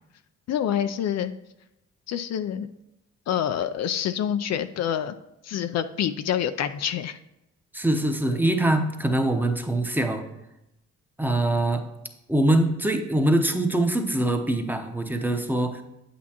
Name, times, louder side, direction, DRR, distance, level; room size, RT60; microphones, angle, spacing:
voice 1, 0.5-1.3 2.1-2.7 3.3-5.1 5.4-7.2, left 9 dB, 60° left, 10 dB, 0.4 m, -27 dB
voice 2, 7.7-10.2 11.2-11.8 12.3-15.8, right 1 dB, 5° right, 5 dB, 0.8 m, -23 dB
8.5 x 8.3 x 2.9 m, 0.89 s
cardioid pair, 90°, 30 cm